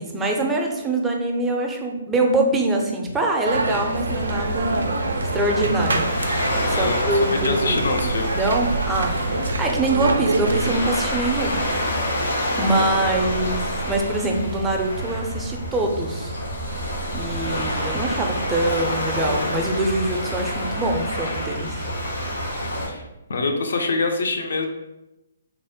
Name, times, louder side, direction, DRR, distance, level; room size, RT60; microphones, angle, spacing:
voice 1, 0.0-4.9 5.3-7.8 8.3-11.6 12.6-16.3 17.1-21.8, right 2 dB, 10° right, 1 dB, 0.4 m, -24 dB
sound 1, 3.5-10.7, right 2 dB, 75° right, 0.3 m, -25 dB
Waves surf, 3.9-22.9, equal, 85° left, 1.4 m, -28 dB
voice 2, 6.7-8.5 12.7-13.3 22.6-23.0 23.3-24.7, left 3 dB, 65° left, 5 dB, 0.5 m, -26 dB
3.4 x 2.1 x 3.5 m, 0.97 s
figure-of-eight pair, 130°, 0 cm